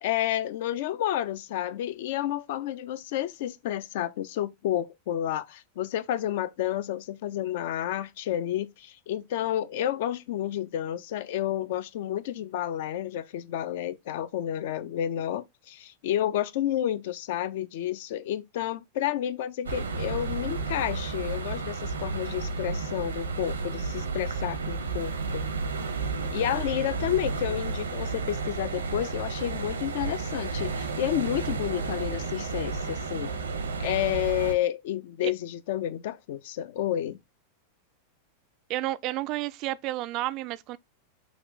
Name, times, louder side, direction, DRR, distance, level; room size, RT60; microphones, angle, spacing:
voice 1, 0.0-25.4 26.3-33.3 33.8-37.2, left 12 dB, 55° left, 0.4 m, -30 dB
sound 1, 19.6-34.5, right 4 dB, 75° right, 0.8 m, -32 dB
voice 2, 38.7-40.8, right 16 dB, 40° right, 0.3 m, -31 dB
6.0 x 2.4 x 3.8 m
figure-of-eight pair, 90°, 0 cm